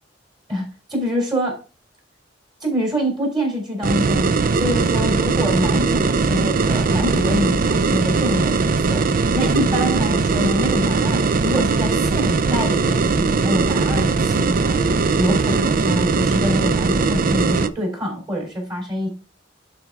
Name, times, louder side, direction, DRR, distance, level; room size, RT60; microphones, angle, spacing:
voice 1, 0.5-1.6 2.6-9.1 9.3-19.1, equal, 25° right, 0 dB, 3.6 m, -25 dB
sound 1, 3.8-17.7, right 4 dB, 50° right, 0.5 m, -19 dB
11.0 x 4.4 x 3.6 m, 0.33 s
head